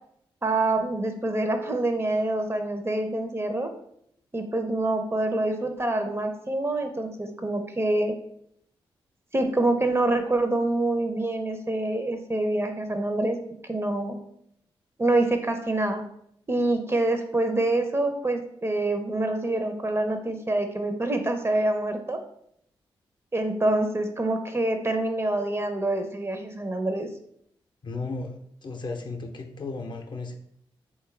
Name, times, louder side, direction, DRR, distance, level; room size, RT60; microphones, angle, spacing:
voice 1, 0.4-3.7 4.3-8.2 9.3-13.4 13.7-14.2 15.0-16.0 16.5-22.2 23.3-27.1, right 2 dB, 25° right, 5 dB, 0.6 m, -26 dB
voice 2, 27.8-30.3, left 3 dB, 45° left, 4 dB, 0.5 m, -35 dB
3.2 x 2.3 x 3.2 m, 0.70 s
supercardioid pair, 40°, 10 cm